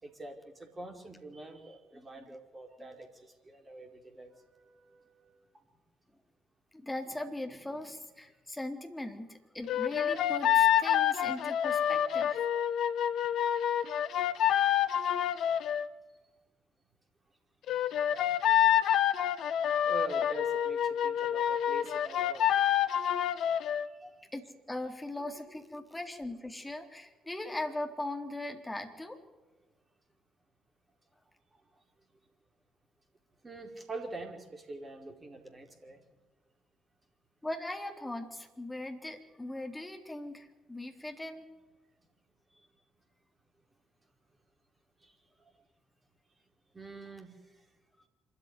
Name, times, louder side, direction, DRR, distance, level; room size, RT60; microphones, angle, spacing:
voice 1, 0.0-3.1 3.4-5.0 19.8-22.5 24.0-24.1 33.4-36.0 46.7-47.3, right 2 dB, 25° right, 3 dB, 4.8 m, -44 dB
voice 2, 1.9-2.3 2.8-3.0 6.7-12.5 24.3-29.2 37.4-41.5, left 1 dB, 15° left, 4 dB, 3.6 m, -40 dB
sound 1, 9.7-15.9 17.7-23.9, left 10 dB, 60° left, 0.9 m, -27 dB
25.5 x 14.0 x 9.8 m, 1.3 s
figure-of-eight pair, 45°, 0 cm